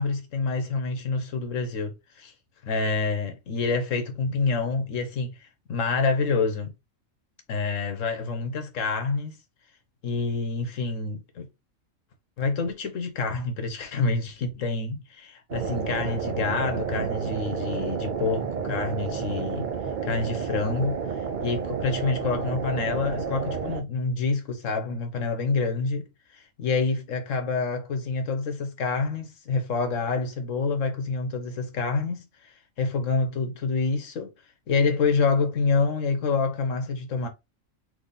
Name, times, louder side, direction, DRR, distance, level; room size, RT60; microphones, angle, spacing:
voice 1, 0.0-2.3 2.6-5.3 5.7-6.7 7.5-9.4 10.0-11.5 12.4-19.7 20.0-21.0 21.4-26.1 26.6-32.2 32.8-34.3 34.7-37.3, left 4 dB, 70° left, 1.3 m, -27 dB
sound 1, 15.5-23.8, right 6 dB, 50° right, 0.6 m, -31 dB
4.0 x 3.4 x 3.4 m
omnidirectional pair, 1.4 m